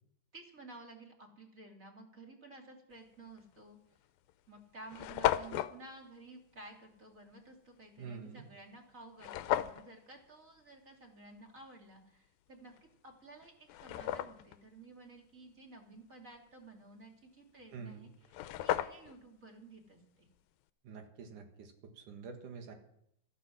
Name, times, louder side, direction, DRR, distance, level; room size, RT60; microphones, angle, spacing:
voice 1, 0.3-3.8 4.5-12.7 13.0-20.3, right 2 dB, 25° right, 2 dB, 2.6 m, -54 dB
sound 1, 3.4-3.6 4.3-4.4 4.6-4.7 4.9-5.7 9.2-9.8 12.8-12.9 13.4-14.6 17.9-18.0 18.2-19.2, left 13 dB, 85° left, 2.5 m, -34 dB
voice 2, 8.0-8.5 17.7-18.1 20.8-22.7, right 5 dB, 65° right, 5 dB, 3.1 m, -47 dB
14.5 x 14.5 x 6.2 m, 0.75 s
omnidirectional pair, 4.1 m